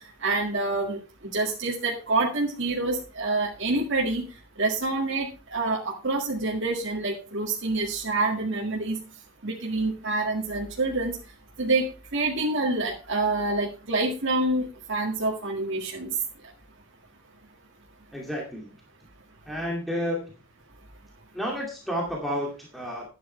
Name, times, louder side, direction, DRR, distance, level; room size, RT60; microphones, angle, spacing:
voice 1, 0.2-1.0 1.3-4.2 4.6-9.0 9.4-11.1 11.6-11.9 12.1-16.1, right 2 dB, 60° right, -3 dB, 2.0 m, -27 dB
voice 2, 18.1-18.7 19.5-20.2 21.3-23.0, equal, ahead, -2 dB, 2.4 m, -30 dB
12.0 x 9.4 x 3.3 m, 0.33 s
head